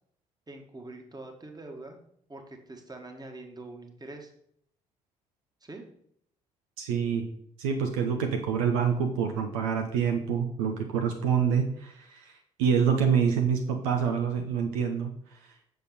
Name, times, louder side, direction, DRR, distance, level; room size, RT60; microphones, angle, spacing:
voice 1, 0.5-2.0 2.3-4.3 5.6-5.9, right 2 dB, 20° right, 4 dB, 1.7 m, -44 dB
voice 2, 6.8-7.3 7.6-12.3 12.6-15.4, right 7 dB, 70° right, 4 dB, 0.8 m, -26 dB
6.8 x 6.7 x 4.2 m, 0.67 s
figure-of-eight pair, 45°, 18 cm